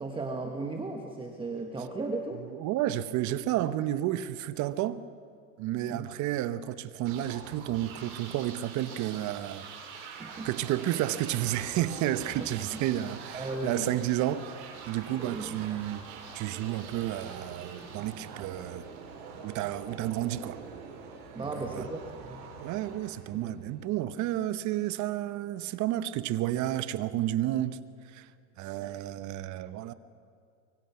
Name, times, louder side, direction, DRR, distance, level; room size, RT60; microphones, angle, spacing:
voice 1, 0.0-2.4 5.9-6.1 10.2-10.5 12.7-12.8 13.3-13.9 15.2-15.8 21.3-22.4 23.3-23.5, right 3 dB, 10° right, 1.4 m, -36 dB
voice 2, 2.3-5.0 5.6-9.7 10.4-16.0 16.3-18.9 19.4-20.6 21.5-21.9 22.6-27.8 28.1-28.3 28.6-29.9, right 13 dB, 40° right, 1.0 m, -31 dB
sound 1, 7.0-23.8, right 5 dB, 60° right, 5.4 m, -45 dB
24.5 x 23.5 x 5.8 m
supercardioid pair, 125°, 46 cm